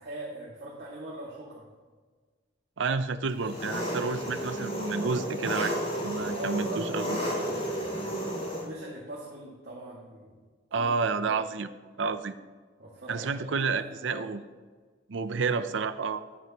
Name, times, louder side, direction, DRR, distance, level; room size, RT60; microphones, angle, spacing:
voice 1, 0.0-1.7 6.3-6.8 7.2-8.4 8.6-10.4 10.7-11.0 11.3-11.4 12.8-14.3, right 1 dB, 60° right, -6 dB, 2.1 m, -42 dB
voice 2, 2.8-5.8 6.0-7.2 10.7-11.7 12.0-12.3 13.1-14.4 15.1-16.2, right 4 dB, 75° right, 12 dB, 0.5 m, -30 dB
Engine, 3.4-8.6, equal, 35° left, 2.7 m, -32 dB
12.0 x 11.0 x 3.0 m, 1.4 s
head